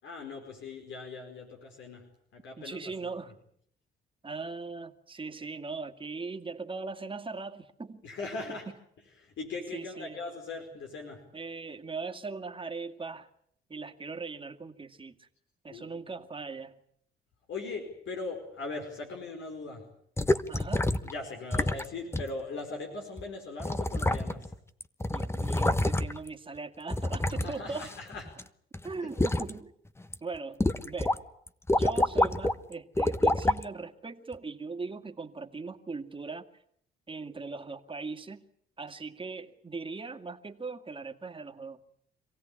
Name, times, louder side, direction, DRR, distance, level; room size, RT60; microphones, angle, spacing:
voice 1, 0.0-2.1 2.3-3.1 8.0-8.7 9.2-11.2 15.7-15.9 17.5-19.8 21.0-24.5 27.4-28.3 29.0-29.1, left 3 dB, 75° left, 2 dB, 4.8 m, -40 dB
voice 2, 2.6-3.3 4.2-8.1 8.5-8.6 9.7-10.2 11.3-13.3 13.7-15.3 15.6-16.8 20.5-20.9 25.1-27.9 28.8-29.7 30.2-31.2 31.7-36.5 37.1-38.4 38.8-41.8, right 4 dB, 25° right, 6 dB, 2.2 m, -39 dB
sound 1, 20.2-21.1 21.5-21.9 22.1-22.3 23.2-23.3 23.6-24.5 24.8-26.3 26.9-28.4 28.7-29.5 30.0-30.1 30.6-31.2 31.5-32.6 33.0-33.6 34.3-34.4, left 1 dB, 15° left, 1.1 m, -27 dB
26.5 x 17.0 x 9.9 m, 0.69 s
cardioid pair, 90°, 20 cm